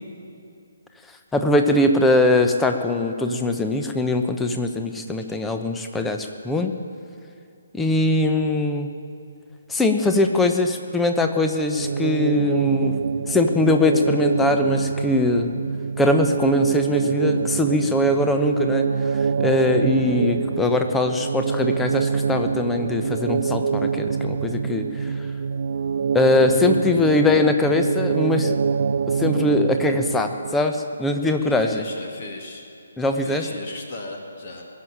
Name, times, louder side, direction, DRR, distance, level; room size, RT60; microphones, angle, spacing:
voice 1, 1.3-6.7 7.7-8.9 9.7-13.0 13.3-15.5 16.0-25.3 26.1-28.6 29.1-31.8 33.0-33.5, left 2 dB, 5° left, 5 dB, 0.9 m, -21 dB
sound 1, 11.7-30.5, right 6 dB, 50° right, 0.3 m, -25 dB
voice 2, 26.9-27.2 31.2-32.7 33.0-34.6, left 2 dB, 40° left, 1 dB, 2.1 m, -37 dB
20.5 x 7.2 x 9.0 m, 2.5 s
figure-of-eight pair, 140°, 0 cm